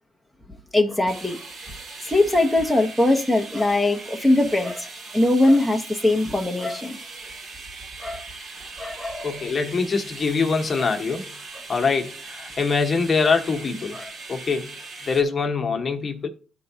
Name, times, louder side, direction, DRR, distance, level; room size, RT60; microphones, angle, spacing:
voice 1, 0.7-1.4 2.0-4.9 5.1-7.0 8.0-8.3 8.8-9.4 13.9-14.0, left 2 dB, ahead, 1.1 m, -21 dB
sound 1, 1.1-15.2, right 3 dB, 55° right, 2.6 m, -40 dB
voice 2, 9.2-11.4 11.7-14.0 14.3-14.7 15.0-16.3, left 4 dB, 40° left, 1.2 m, -24 dB
13.5 x 4.6 x 2.8 m
cardioid pair, 90°, 0 cm